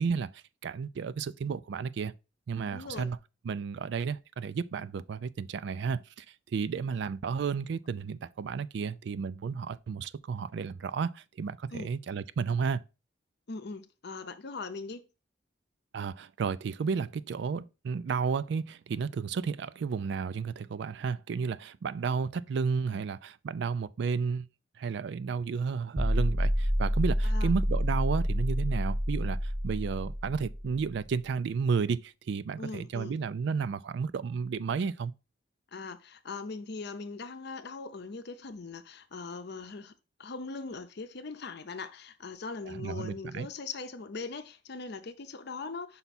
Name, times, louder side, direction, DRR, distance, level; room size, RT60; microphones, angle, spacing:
voice 1, 0.0-2.1 2.5-3.2 3.4-6.2 6.5-12.8 15.9-24.5 24.8-35.1 42.7-43.5, right 5 dB, 65° right, 0.4 m, -32 dB
voice 2, 2.7-3.1 11.7-11.9 13.5-15.0 27.2-27.5 32.6-33.2 35.7-39.9 40.2-46.0, left 4 dB, 60° left, 0.7 m, -40 dB
sound 1, 26.0-31.0, equal, ahead, 0.4 m, -28 dB
5.6 x 4.5 x 4.1 m
head